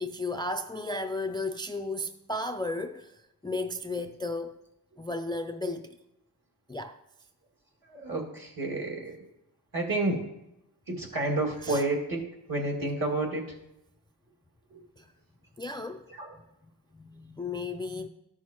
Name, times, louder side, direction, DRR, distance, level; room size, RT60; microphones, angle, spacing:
voice 1, 0.0-4.6 5.0-6.0 6.7-7.0 11.6-11.9 15.0-15.1 15.6-16.1 16.9-18.1, left 2 dB, 10° left, 0.3 m, -34 dB
voice 2, 7.9-9.2 9.7-10.2 10.9-13.4 14.7-14.8 16.2-16.3, right 2 dB, 55° right, 2.1 m, -30 dB
13.0 x 6.1 x 2.9 m
cardioid pair, 70°, 41 cm